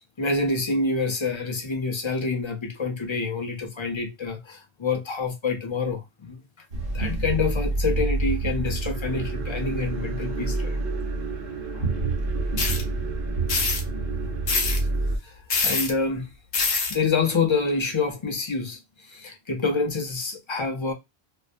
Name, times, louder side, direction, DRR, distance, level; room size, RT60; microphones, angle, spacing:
voice 1, 0.2-6.4 6.9-10.8 11.7-11.8 15.2-16.3 16.9-20.9, left 4 dB, 45° left, 0.4 m, -27 dB
sound 1, 6.7-15.2, right 3 dB, 60° right, 1.0 m, -28 dB
sound 2, 12.6-12.8 13.5-13.8 14.5-14.8 15.5-15.9 16.5-16.9, left 4 dB, 65° left, 0.8 m, -24 dB
2.5 x 2.2 x 2.5 m
omnidirectional pair, 1.1 m